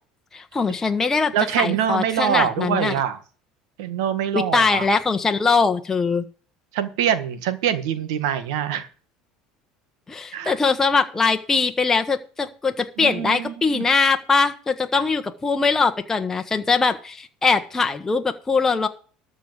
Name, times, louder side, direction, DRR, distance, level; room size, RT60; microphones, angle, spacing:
voice 1, 0.3-2.9 4.3-6.2 10.1-18.9, left 4 dB, 15° left, 5 dB, 1.2 m, -21 dB
voice 2, 1.3-3.2 3.8-4.9 6.7-8.9 10.3-10.5 13.0-13.8 14.9-15.0, right 9 dB, 85° right, 11 dB, 1.6 m, -24 dB
13.5 x 5.0 x 8.0 m, 0.40 s
supercardioid pair, 120°, 3 cm